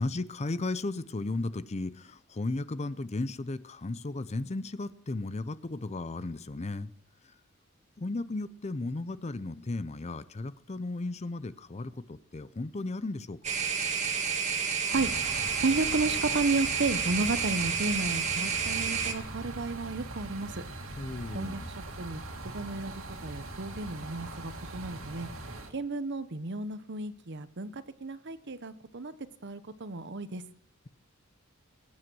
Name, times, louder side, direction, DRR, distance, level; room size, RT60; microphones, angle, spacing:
voice 1, 0.0-6.9 8.0-13.5 21.0-21.7, left 2 dB, 30° left, 15 dB, 0.5 m, -35 dB
sound 1, 13.4-19.1, right 6 dB, 35° right, 1.8 m, -30 dB
sound 2, 14.9-25.7, right 2 dB, 70° right, 2.3 m, -41 dB
voice 2, 15.5-20.6 21.3-25.3 25.7-29.2 29.4-30.4, right 3 dB, 55° right, 13 dB, 0.9 m, -33 dB
22.5 x 9.6 x 6.2 m, 0.70 s
head